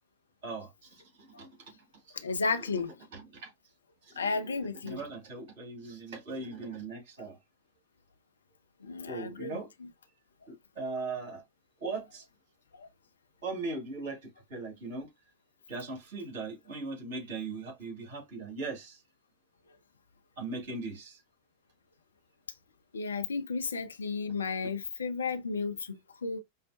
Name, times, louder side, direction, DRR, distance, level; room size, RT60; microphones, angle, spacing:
voice 1, 0.4-1.0 1.3-1.5 2.1-2.2 3.1-3.5 4.1-4.4 4.8-7.4 9.1-9.7 10.5-11.4 11.8-12.2 13.4-15.1 15.7-19.0 20.4-21.2, right 3 dB, 50° right, 2.8 m, -39 dB
voice 2, 2.1-3.0 4.2-5.0 8.8-9.9 12.7-12.9 22.9-26.4, left 4 dB, 70° left, 0.6 m, -33 dB
5.5 x 2.2 x 2.5 m
figure-of-eight pair, 90°, 0 cm